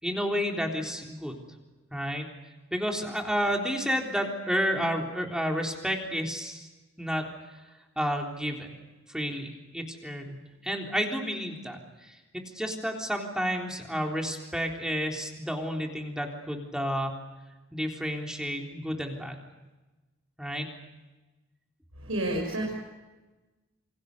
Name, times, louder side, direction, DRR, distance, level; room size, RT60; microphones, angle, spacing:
voice 1, 0.0-1.4 1.9-2.3 2.7-6.7 7.0-7.3 7.5-7.6 8.0-8.8 9.1-12.2 12.5-17.2 17.7-19.4 20.4-20.7, equal, 5° right, 1 dB, 3.7 m, -31 dB
voice 2, 22.0-22.8, right 1 dB, 80° right, 0 dB, 6.8 m, -30 dB
28.5 x 26.0 x 6.7 m, 1.1 s
head